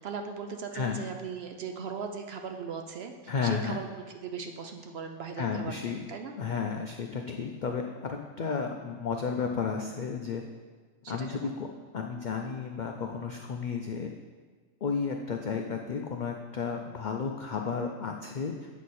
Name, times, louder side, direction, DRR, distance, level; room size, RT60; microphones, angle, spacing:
voice 1, 0.0-3.1 3.4-3.9 4.1-6.3 11.0-11.5, right 6 dB, 60° right, 5 dB, 0.7 m, -38 dB
voice 2, 3.3-3.8 5.4-6.0 6.4-10.4 11.1-11.7 11.9-14.1 14.8-18.7, left 5 dB, 70° left, 3 dB, 0.4 m, -32 dB
8.2 x 6.4 x 4.2 m, 1.5 s
omnidirectional pair, 1.4 m